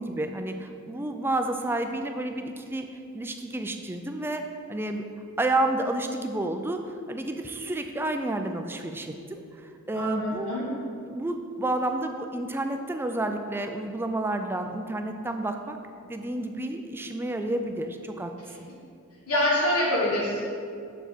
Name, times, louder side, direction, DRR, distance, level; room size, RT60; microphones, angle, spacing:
voice 1, 0.0-2.9 3.1-4.4 4.7-5.0 5.4-15.8 16.0-18.3 18.6-18.7, right 2 dB, 10° right, 5 dB, 0.3 m, -30 dB
voice 2, 9.9-10.6 19.3-20.4, left 1 dB, 85° left, -6 dB, 1.5 m, -25 dB
6.6 x 4.7 x 4.3 m, 2.4 s
head